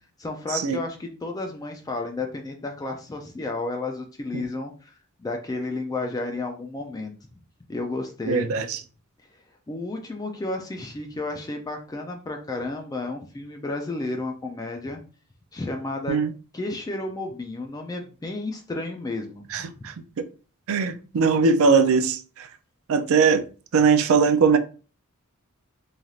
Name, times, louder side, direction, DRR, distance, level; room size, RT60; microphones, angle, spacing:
voice 1, 0.2-7.1 7.7-8.5 9.7-15.0 15.5-16.2 16.5-19.9, left 2 dB, 15° left, 0.3 m, -32 dB
voice 2, 8.3-8.8 16.1-16.3 19.5-20.2 20.7-22.5 22.9-23.4 23.7-24.6, right 5 dB, 65° right, 0.4 m, -21 dB
3.2 x 2.6 x 2.3 m
head